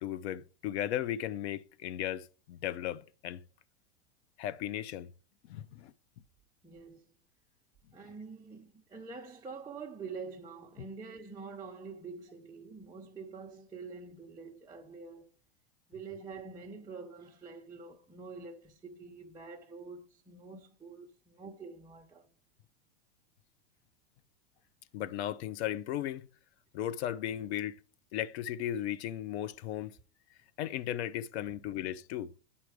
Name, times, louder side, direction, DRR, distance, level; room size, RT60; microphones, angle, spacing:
voice 1, 0.0-3.4 4.4-5.1 5.5-5.9 10.8-10.9 24.9-26.3 26.7-27.8 28.1-30.0 30.6-32.3, left 11 dB, 70° left, 0.8 m, -36 dB
voice 2, 6.6-7.1 7.9-15.3 15.9-22.3 31.6-31.7, right 4 dB, 10° right, 0.8 m, -46 dB
9.5 x 5.7 x 4.8 m
supercardioid pair, 125°, 34 cm